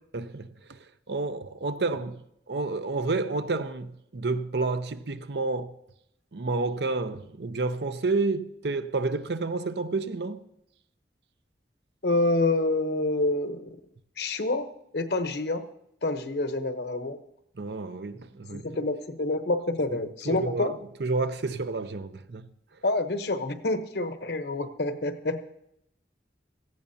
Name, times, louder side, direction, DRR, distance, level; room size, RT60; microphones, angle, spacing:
voice 1, 0.1-0.8 1.1-2.2 2.5-5.7 6.3-10.4 17.6-18.7 20.3-20.7 21.0-22.5, right 3 dB, 70° right, 0.7 m, -30 dB
voice 2, 12.0-13.8 14.2-14.7 14.9-15.6 16.0-17.2 18.5-20.7 22.8-25.4, left 2 dB, 65° left, 0.9 m, -27 dB
17.5 x 14.5 x 2.8 m
head